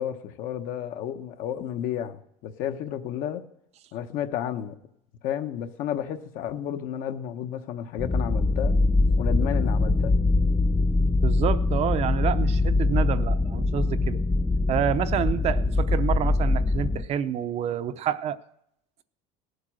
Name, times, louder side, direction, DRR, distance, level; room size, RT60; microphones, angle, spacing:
voice 1, 0.0-3.5 3.9-4.8 5.2-8.8 9.1-10.2, left 10 dB, 60° left, 1.1 m, -32 dB
sound 1, 8.0-17.0, left 3 dB, 10° left, 0.4 m, -23 dB
voice 2, 11.2-14.2 14.7-18.4, right 9 dB, 40° right, 0.7 m, -28 dB
18.0 x 8.1 x 6.4 m
supercardioid pair, 130°, 16 cm